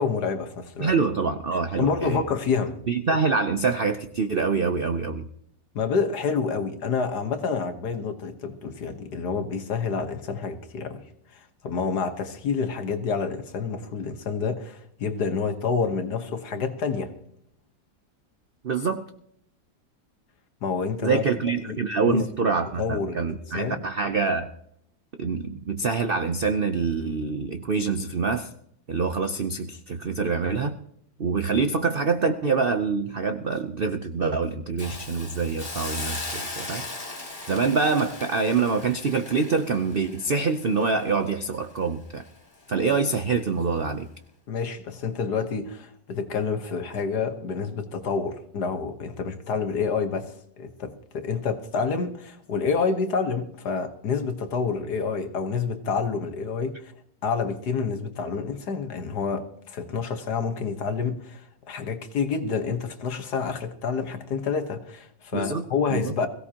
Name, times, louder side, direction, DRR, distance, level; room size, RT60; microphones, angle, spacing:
voice 1, 0.0-0.9 1.8-2.8 5.7-11.0 11.3-17.1 20.6-21.2 21.7-21.8 22.0-22.2 22.8-23.8 44.5-56.9 57.2-66.3, left 5 dB, 65° left, 1.8 m, -28 dB
voice 2, 0.8-2.2 2.9-5.3 18.6-19.0 21.0-24.5 25.2-28.5 28.9-30.8 31.2-36.9 37.5-42.2 42.7-44.1 65.3-66.1, right 4 dB, 55° right, 0.6 m, -25 dB
Hiss, 34.8-41.8 42.2-42.4, left 2 dB, 25° left, 2.3 m, -38 dB
22.0 x 16.5 x 2.9 m
omnidirectional pair, 2.0 m